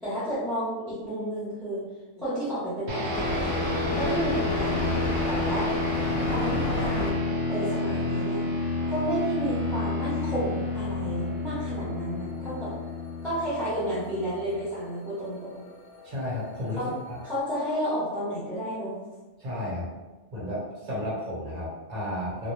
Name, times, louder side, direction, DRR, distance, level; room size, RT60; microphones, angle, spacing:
voice 1, 0.0-1.8 2.1-4.9 5.2-5.7 6.3-8.4 8.9-12.7 13.2-15.6 16.8-16.9 17.2-19.0, equal, ahead, -12 dB, 0.8 m, -31 dB
sound 1, 2.3-17.4, left 1 dB, 60° left, 0.8 m, -37 dB
sound 2, 2.9-14.6, left 3 dB, 70° right, 0.9 m, -30 dB
voice 2, 16.0-17.2 19.4-19.9 20.3-22.5, left 1 dB, 40° right, -6 dB, 0.9 m, -33 dB
2.2 x 2.2 x 3.0 m, 1.2 s
omnidirectional pair, 1.3 m